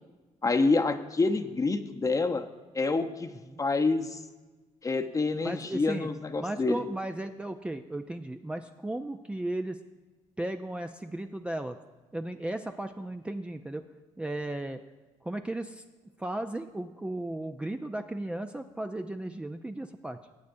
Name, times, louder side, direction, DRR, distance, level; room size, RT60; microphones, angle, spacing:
voice 1, 0.4-2.4 2.7-3.3 3.6-4.2 4.8-6.8, left 3 dB, 25° left, 8 dB, 0.8 m, -27 dB
voice 2, 5.4-6.1 6.4-9.8 10.4-11.8 12.1-13.9 14.2-14.8 15.2-15.8 16.2-20.2, right 1 dB, 10° right, 6 dB, 0.4 m, -35 dB
19.5 x 8.2 x 2.6 m, 1.3 s
cardioid pair, 85°, 13 cm